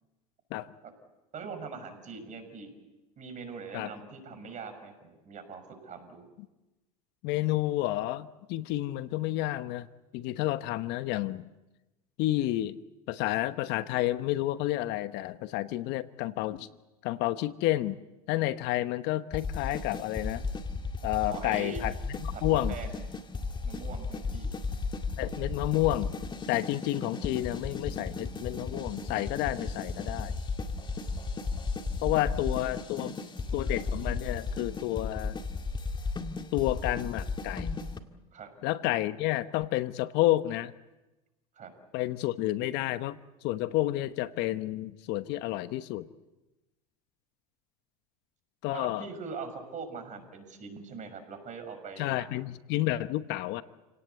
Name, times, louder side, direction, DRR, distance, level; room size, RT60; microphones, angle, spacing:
voice 1, 1.3-2.7 3.2-6.3 21.3-21.8 22.3-23.1 23.6-24.5 38.3-38.5 41.6-41.7 48.7-52.3, right 5 dB, 40° right, 7 dB, 6.2 m, -42 dB
voice 2, 7.2-9.9 10.1-11.5 12.2-12.8 13.1-16.7 17.0-18.0 18.3-20.4 21.0-22.8 25.2-26.1 26.5-30.3 32.0-33.2 33.5-35.4 36.5-37.7 38.6-40.7 41.9-46.1 48.6-49.1 52.0-53.6, left 16 dB, 60° left, 13 dB, 1.1 m, -30 dB
sound 1, 19.3-38.0, left 4 dB, 25° left, 2.1 m, -35 dB
29.5 x 18.0 x 8.3 m, 1.1 s
hypercardioid pair, 90°, 19 cm